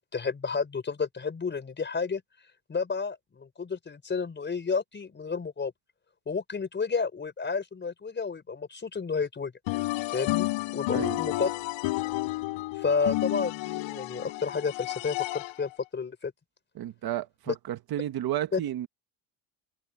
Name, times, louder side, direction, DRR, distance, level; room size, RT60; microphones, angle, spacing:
voice 1, 0.1-2.2 2.7-5.7 6.3-9.5 10.1-11.5 12.7-16.3 17.5-17.6 18.5-18.6, left 5 dB, 25° left, 4.7 m, -31 dB
sound 1, 9.7-15.7, left 20 dB, 90° left, 5.1 m, -31 dB
voice 2, 16.8-18.9, right 12 dB, 50° right, 1.4 m, -32 dB
cardioid pair, 135°, 45 cm